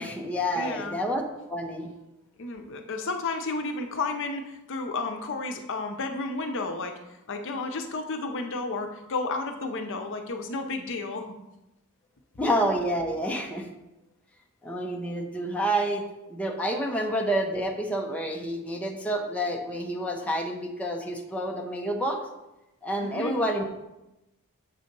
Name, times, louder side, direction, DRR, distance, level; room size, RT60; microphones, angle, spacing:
voice 1, 0.0-1.9 12.4-13.7 14.6-22.2 22.8-23.7, equal, 5° left, 1 dB, 0.7 m, -29 dB
voice 2, 0.5-1.0 2.4-7.0 7.3-11.3 23.0-23.3, left 3 dB, 60° left, 5 dB, 0.7 m, -32 dB
7.4 x 4.1 x 5.3 m, 0.93 s
head